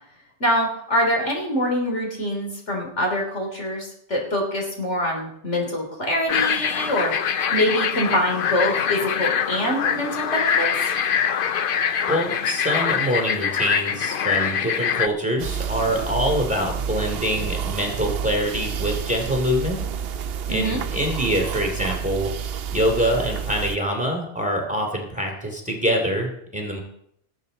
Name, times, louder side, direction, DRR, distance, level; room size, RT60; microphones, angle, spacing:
voice 1, 0.4-10.9 20.5-20.8, equal, 80° left, 0 dB, 3.7 m, -25 dB
sound 1, 6.3-15.1, left 8 dB, 55° left, 0.7 m, -24 dB
voice 2, 12.1-19.9 20.5-22.3 22.7-26.8, equal, 5° right, 0 dB, 2.6 m, -25 dB
sound 2, 15.4-23.8, right 7 dB, 65° right, 0.9 m, -29 dB
19.0 x 8.2 x 4.0 m, 0.71 s
omnidirectional pair, 1.2 m